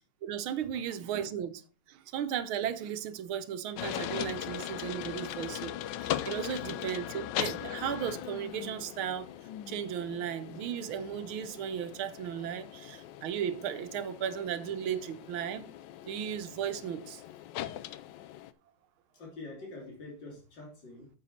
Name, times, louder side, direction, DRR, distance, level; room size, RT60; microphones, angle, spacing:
voice 1, 0.2-1.6 1.9-5.7 6.0-9.3 9.7-15.7 16.1-17.2, right 9 dB, 80° right, 1.6 m, -35 dB
sound 1, 3.8-18.5, left 12 dB, 75° left, 1.2 m, -40 dB
voice 2, 19.1-21.1, left 2 dB, 60° left, 3.6 m, -46 dB
9.1 x 7.3 x 4.2 m
omnidirectional pair, 2.3 m